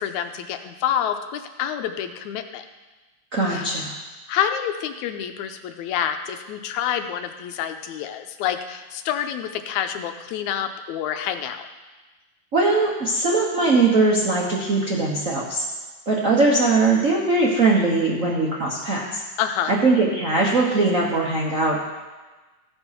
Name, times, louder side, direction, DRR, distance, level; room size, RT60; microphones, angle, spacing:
voice 1, 0.0-2.7 3.5-3.7 4.3-11.7 19.4-19.8, left 9 dB, 90° left, 7 dB, 2.0 m, -27 dB
voice 2, 3.3-3.9 12.5-15.6 16.1-19.2 19.7-21.8, right 3 dB, 65° right, -4 dB, 0.8 m, -20 dB
14.5 x 5.4 x 5.9 m, 1.2 s
omnidirectional pair, 3.4 m